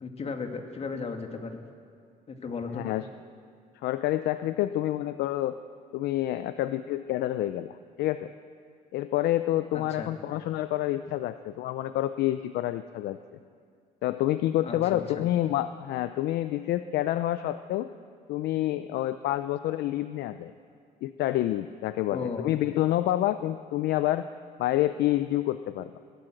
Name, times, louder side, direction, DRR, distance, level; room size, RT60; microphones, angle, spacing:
voice 1, 0.0-1.6 2.3-2.9 9.7-10.1 14.6-15.2 22.1-22.4, left 4 dB, 40° left, 4 dB, 2.4 m, -35 dB
voice 2, 2.7-3.1 3.8-5.6 5.9-8.3 8.9-13.2 14.0-17.9 18.3-20.5 21.0-24.3 24.6-25.9, left 14 dB, 75° left, 12 dB, 0.6 m, -28 dB
22.5 x 17.0 x 7.8 m, 2.2 s
cardioid pair, 110°, 17 cm